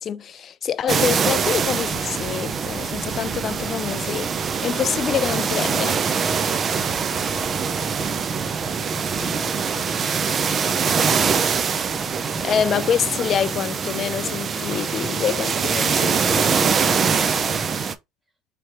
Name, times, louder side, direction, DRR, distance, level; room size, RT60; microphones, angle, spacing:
voice 1, 0.0-4.3 4.6-6.0 12.4-16.7, left 8 dB, 40° left, 0.3 m, -26 dB
sound 1, 0.9-17.9, right 6 dB, 35° right, 0.5 m, -23 dB
voice 2, 16.6-17.9, right 1 dB, 15° right, 0.9 m, -41 dB
3.3 x 3.1 x 2.8 m
supercardioid pair, 95°, 0 cm